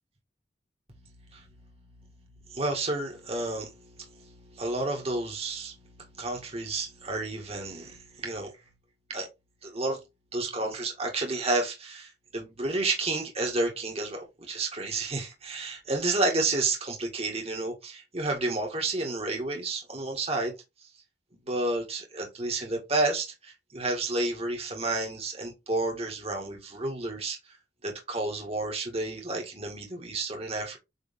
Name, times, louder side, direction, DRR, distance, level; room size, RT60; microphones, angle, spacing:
voice 1, 0.9-8.5 9.1-9.3 9.6-10.0 10.3-20.5 21.5-27.4 27.8-30.8, right 2 dB, 35° right, 1.9 m, -31 dB
8.2 x 3.5 x 3.6 m
head